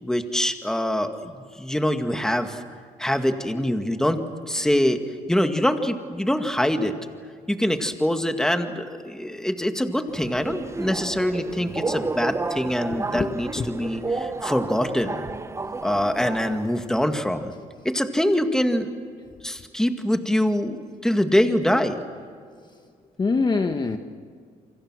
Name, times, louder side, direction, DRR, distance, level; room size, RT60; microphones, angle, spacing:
voice 1, 0.0-2.6 3.0-4.2 4.5-5.0 5.3-6.9 7.5-15.2 15.8-17.5 17.8-18.9 19.4-22.0, equal, 5° left, 6 dB, 2.0 m, -24 dB
Subway metro underground, 10.1-16.9, right 3 dB, 20° right, 0.9 m, -31 dB
voice 2, 12.9-13.7 23.2-24.0, left 4 dB, 30° left, 6 dB, 1.2 m, -25 dB
29.0 x 25.0 x 6.3 m, 2.1 s
cardioid pair, 105°, 15 cm